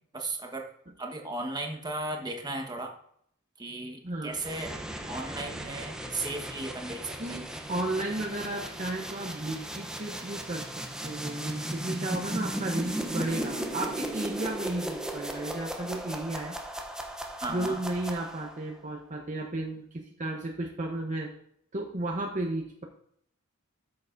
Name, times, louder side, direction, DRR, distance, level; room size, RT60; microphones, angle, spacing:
voice 1, 0.1-0.7 1.0-2.9 3.6-4.7 5.1-7.4 17.4-17.8, right 2 dB, 20° right, 2 dB, 1.3 m, -35 dB
voice 2, 4.0-4.4 7.2-10.7 11.0-16.5 17.5-21.3 21.7-22.8, right 2 dB, 35° right, 1 dB, 0.9 m, -33 dB
sound 1, 4.3-18.6, right 1 dB, 5° right, 0.7 m, -36 dB
13.0 x 6.7 x 2.6 m, 0.67 s
head